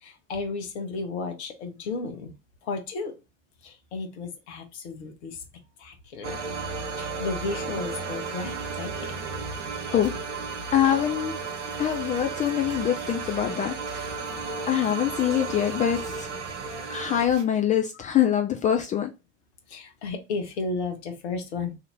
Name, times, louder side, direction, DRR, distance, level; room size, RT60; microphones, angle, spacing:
voice 1, 0.0-2.3 2.6-3.1 3.6-5.4 5.8-6.4 7.0-9.3 14.1-14.6 16.6-16.9 18.0-18.1 19.7-21.8, left 3 dB, 65° left, 1.0 m, -34 dB
sound 1, 6.2-17.3, right 4 dB, 80° right, 0.7 m, -34 dB
sound 2, 8.2-17.4, right 6 dB, 50° right, 0.9 m, -46 dB
voice 2, 10.7-11.3 11.8-13.7 14.7-16.3 16.9-19.1, left 10 dB, 20° left, 0.3 m, -24 dB
2.8 x 2.7 x 3.8 m
figure-of-eight pair, 65°, 36 cm